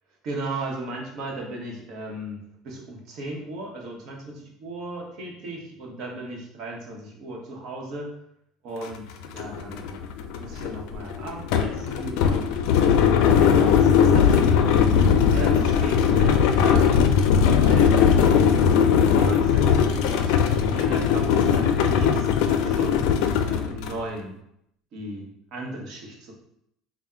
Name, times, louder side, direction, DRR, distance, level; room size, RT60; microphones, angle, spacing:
voice 1, 0.2-2.4 2.6-8.1 8.6-9.9 10.4-12.6 13.4-14.5 15.3-18.5 19.1-23.0 23.4-24.3 24.9-25.3 25.5-26.3, right 2 dB, 55° right, -1 dB, 1.0 m, -36 dB
sound 1, 8.8-8.9 9.2-24.0, left 7 dB, 75° left, 0.4 m, -19 dB
3.5 x 2.1 x 4.3 m, 0.75 s
supercardioid pair, 110°, 0 cm